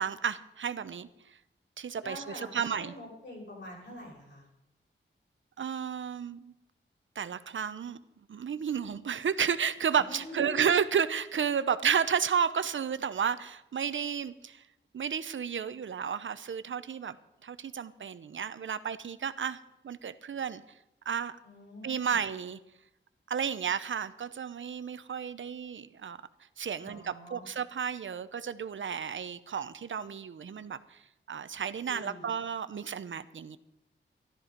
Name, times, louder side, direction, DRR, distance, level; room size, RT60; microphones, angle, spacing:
voice 1, 0.0-1.4 1.8-2.9 5.6-6.5 7.2-8.0 8.3-14.6 14.9-17.2 17.4-20.6 21.1-21.4 21.8-22.6 23.3-26.2 26.6-31.0 31.3-33.6, right 7 dB, 70° right, 13 dB, 0.7 m, -32 dB
voice 2, 2.0-4.4 10.0-10.7 21.4-22.2 26.8-27.4 31.8-32.3, left 1 dB, 60° left, -3 dB, 6.4 m, -45 dB
13.5 x 12.5 x 5.2 m, 0.87 s
wide cardioid pair, 110°, 21 cm